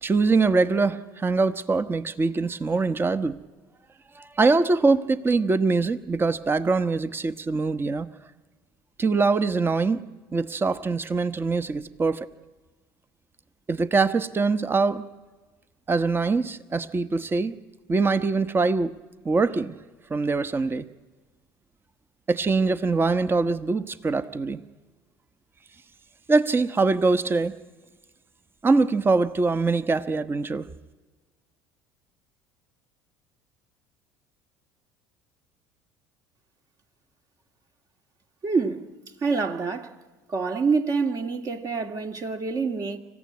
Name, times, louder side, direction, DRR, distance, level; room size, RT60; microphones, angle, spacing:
voice 1, 0.0-3.4 4.2-8.1 9.0-10.0 10.3-12.3 13.7-15.0 15.9-17.5 17.9-18.9 19.2-19.8 20.1-20.8 22.3-24.6 26.3-27.5 28.6-30.7, right 3 dB, 25° right, 1.0 m, -23 dB
voice 2, 38.4-38.9 39.2-39.9 40.3-43.0, right 4 dB, 40° right, 1.9 m, -26 dB
26.5 x 15.0 x 9.5 m
hypercardioid pair, 75°, 9 cm